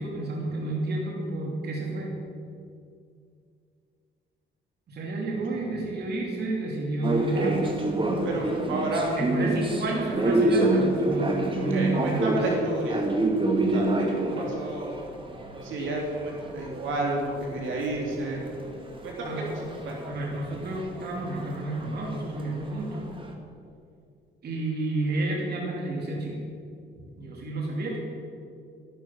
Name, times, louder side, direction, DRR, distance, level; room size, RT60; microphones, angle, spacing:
voice 1, 0.0-2.2 4.9-7.9 9.1-12.4 19.2-19.4 20.1-23.1 24.4-26.4 27.2-28.0, right 2 dB, 55° right, -2 dB, 3.0 m, -31 dB
sound 1, 7.0-17.9 18.1-23.3, right 2 dB, 25° right, 2.0 m, -28 dB
voice 2, 8.2-9.1 9.8-9.9 11.7-13.1 13.5-14.9 15.6-18.4 19.0-19.6 19.8-20.0 26.9-27.0, right 2 dB, 80° right, -2 dB, 3.3 m, -31 dB
12.5 x 12.0 x 6.0 m, 2.4 s
cardioid pair, 90°, 20 cm